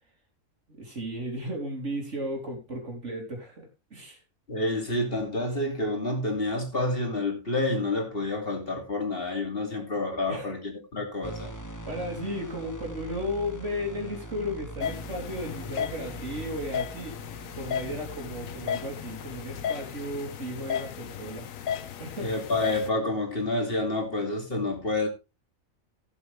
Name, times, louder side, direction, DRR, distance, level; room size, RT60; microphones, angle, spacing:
voice 1, 0.7-4.2 10.3-10.5 11.9-17.2 17.6-21.5 22.0-22.3, equal, 60° right, 3.9 m, -35 dB
voice 2, 4.5-11.5 22.2-25.1, left 2 dB, 45° left, 2.9 m, -29 dB
sound 1, 11.2-19.7, right 2 dB, 15° left, 1.2 m, -42 dB
sound 2, 14.8-22.9, left 8 dB, 75° left, 1.2 m, -35 dB
16.5 x 7.2 x 3.5 m
omnidirectional pair, 1.4 m